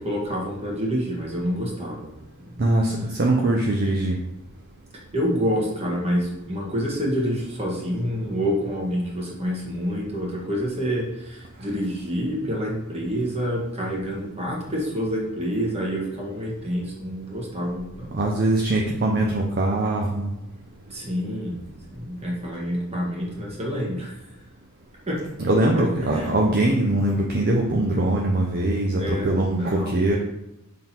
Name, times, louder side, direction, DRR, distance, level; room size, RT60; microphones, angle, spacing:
voice 1, 0.0-2.1 2.4-2.6 5.1-18.1 20.9-21.6 21.9-24.1 25.1-25.2 25.8-26.3 29.0-29.9, equal, 30° right, -3 dB, 1.6 m, -27 dB
voice 2, 2.6-2.9 3.2-4.2 18.1-20.3 25.4-30.2, right 2 dB, 45° right, -1 dB, 0.6 m, -22 dB
5.7 x 3.7 x 4.4 m, 0.87 s
head